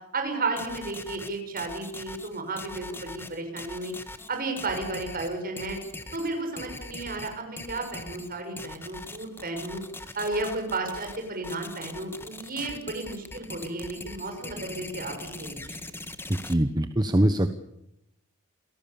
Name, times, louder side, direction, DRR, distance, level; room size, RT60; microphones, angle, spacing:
voice 1, 0.1-3.9 4.3-5.8 6.1-9.8 10.1-15.8, right 2 dB, 40° right, 4 dB, 6.7 m, -33 dB
sound 1, 0.6-16.5, left 2 dB, 10° left, 1.5 m, -41 dB
voice 2, 16.3-17.5, right 1 dB, 20° right, 9 dB, 1.1 m, -23 dB
28.5 x 18.0 x 7.1 m, 0.85 s
head